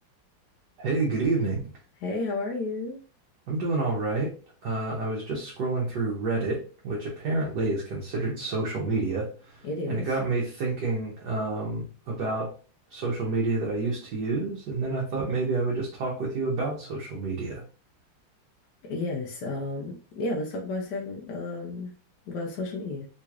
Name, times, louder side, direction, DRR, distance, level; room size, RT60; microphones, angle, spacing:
voice 1, 0.8-1.6 3.5-4.3 4.6-12.5 12.9-17.6, right 3 dB, 60° right, -3 dB, 1.3 m, -29 dB
voice 2, 2.0-3.0 9.6-10.1 18.8-21.9 22.3-23.1, left 2 dB, 70° left, 0 dB, 1.0 m, -32 dB
3.8 x 3.0 x 2.3 m, 0.36 s
omnidirectional pair, 2.4 m